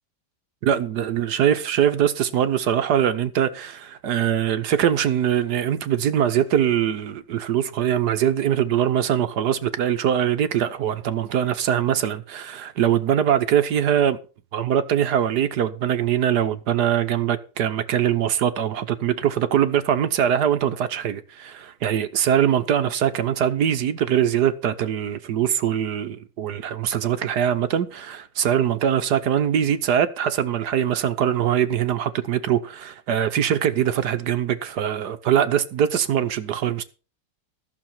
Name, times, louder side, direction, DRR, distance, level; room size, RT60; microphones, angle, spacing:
voice 1, 0.6-14.2 14.5-36.8, right 9 dB, 60° right, 1.3 m, -22 dB
14.5 x 6.8 x 5.9 m
omnidirectional pair, 2.3 m